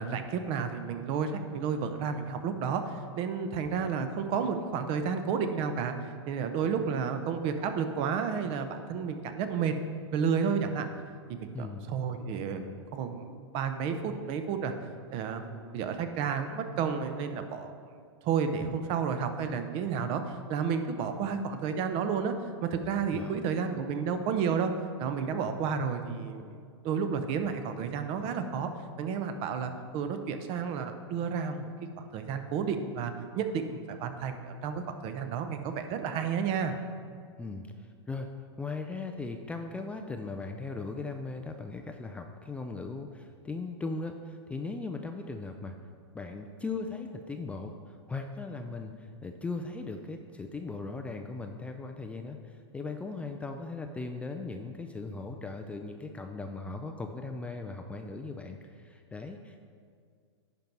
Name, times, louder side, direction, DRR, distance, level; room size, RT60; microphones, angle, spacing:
voice 1, 0.0-5.9 6.3-9.7 10.1-10.9 11.3-12.6 12.9-14.7 15.1-18.0 18.2-20.2 20.5-22.3 22.6-24.7 25.0-28.7 29.0-31.7 32.0-36.7, right 6 dB, 40° right, 8 dB, 0.8 m, -31 dB
voice 2, 11.5-11.9 18.6-18.8 23.1-23.4 37.4-38.3 38.6-45.7 46.1-59.6, left 3 dB, 10° left, 4 dB, 0.4 m, -38 dB
10.5 x 4.6 x 5.4 m, 2.1 s
hypercardioid pair, 125°, 15 cm